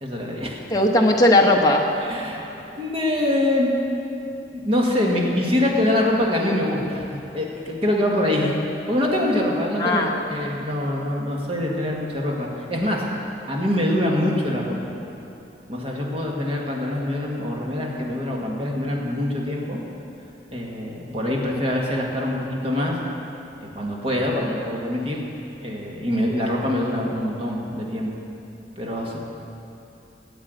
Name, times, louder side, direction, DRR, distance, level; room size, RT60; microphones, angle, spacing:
voice 1, 0.0-0.6 2.0-2.4 2.7-3.7 4.5-7.0 7.3-8.5 8.9-13.0 13.5-14.8 15.7-19.8 20.5-23.0 23.7-25.2 25.6-28.1 28.8-29.2, left 1 dB, 35° right, -2 dB, 1.8 m, -24 dB
voice 2, 0.7-1.9 9.8-10.1, left 1 dB, 20° left, 0 dB, 1.0 m, -17 dB
10.0 x 8.1 x 8.0 m, 2.8 s
head